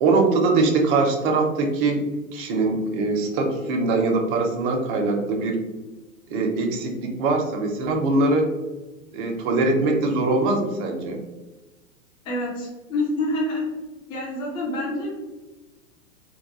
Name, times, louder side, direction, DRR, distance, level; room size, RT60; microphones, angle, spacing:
voice 1, 0.0-2.1 2.3-5.6 6.3-8.5 9.1-11.2, right 3 dB, 40° right, 2 dB, 0.6 m, -22 dB
voice 2, 12.2-13.7 14.1-15.1, left 1 dB, 15° left, -4 dB, 0.3 m, -27 dB
2.3 x 2.1 x 2.9 m, 1.1 s
hypercardioid pair, 110°, 42 cm